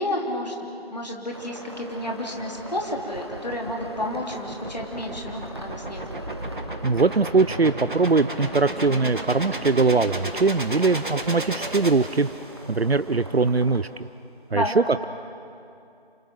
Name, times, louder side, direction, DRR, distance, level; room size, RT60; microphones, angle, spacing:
voice 1, 0.0-6.0 14.5-14.8, left 1 dB, 45° left, 0 dB, 3.2 m, -30 dB
sound 1, 1.3-13.8, right 1 dB, 25° right, 1.2 m, -42 dB
sound 2, 2.4-12.7, right 1 dB, 55° right, 1.8 m, -34 dB
voice 2, 6.8-12.3 12.7-13.9 14.5-15.0, right 4 dB, 85° right, 13 dB, 0.8 m, -21 dB
28.0 x 26.5 x 5.9 m, 2.5 s
figure-of-eight pair, 170°, 30 cm